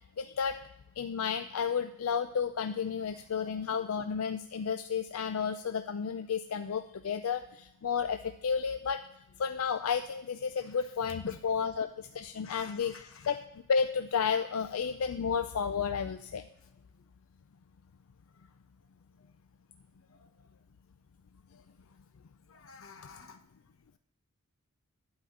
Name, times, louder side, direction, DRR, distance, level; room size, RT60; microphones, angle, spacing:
voice 1, 0.2-0.6 1.0-9.0 9.4-13.4 13.7-16.4, left 6 dB, 85° left, 9 dB, 0.4 m, -32 dB
voice 2, 3.4-3.9 10.6-10.9 11.2-11.4 12.4-13.4 16.2-16.3 20.1-20.3 22.5-23.4, left 4 dB, 70° left, 7 dB, 1.0 m, -50 dB
11.0 x 5.1 x 7.7 m, 0.76 s
head